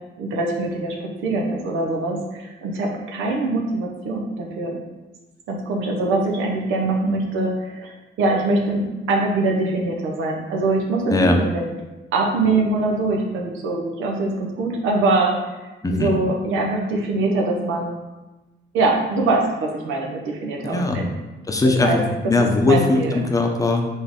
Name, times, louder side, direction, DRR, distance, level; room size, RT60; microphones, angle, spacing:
voice 1, 0.2-1.0 1.2-4.8 5.5-7.9 8.2-11.7 12.1-15.3 15.6-18.0 18.7-21.1 21.8-22.0 22.6-23.2, right 2 dB, 90° right, 0 dB, 0.8 m, -23 dB
voice 2, 11.1-11.4 15.8-16.1 20.6-21.0 21.5-23.9, left 2 dB, 15° left, 2 dB, 0.7 m, -19 dB
4.2 x 3.5 x 3.6 m, 1.1 s
cardioid pair, 90°, 20 cm